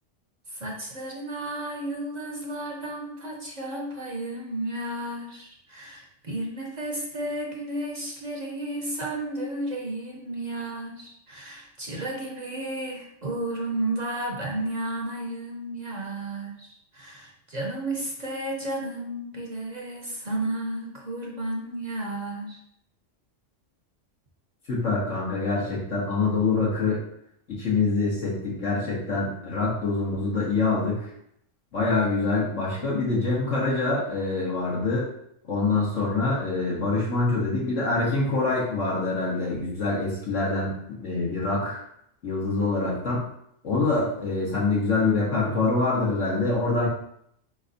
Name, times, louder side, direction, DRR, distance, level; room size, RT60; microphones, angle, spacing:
voice 1, 0.5-22.6, right 1 dB, 45° right, -1 dB, 0.7 m, -33 dB
voice 2, 24.7-27.0 27.5-31.1 31.7-35.1 35.5-41.8 42.2-43.2 43.6-46.9, left 3 dB, 90° left, -6 dB, 1.8 m, -25 dB
4.5 x 4.1 x 2.6 m, 0.73 s
omnidirectional pair, 1.2 m